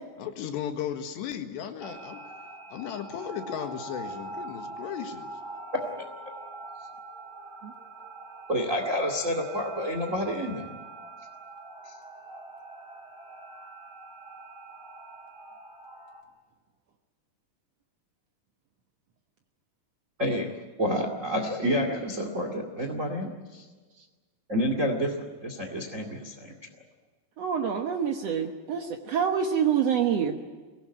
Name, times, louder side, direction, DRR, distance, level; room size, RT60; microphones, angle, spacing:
voice 1, 0.2-2.2 2.7-5.3, left 9 dB, 85° left, 6 dB, 3.9 m, -35 dB
sound 1, 1.8-16.2, right 2 dB, 20° left, 4.7 m, -43 dB
voice 2, 8.5-10.6 20.2-20.5 20.8-23.6 24.5-25.1 25.4-26.6, equal, 25° right, 4 dB, 1.7 m, -29 dB
voice 3, 27.4-30.4, right 8 dB, 75° right, 3 dB, 1.5 m, -26 dB
24.0 x 18.0 x 9.7 m, 1.4 s
omnidirectional pair, 4.8 m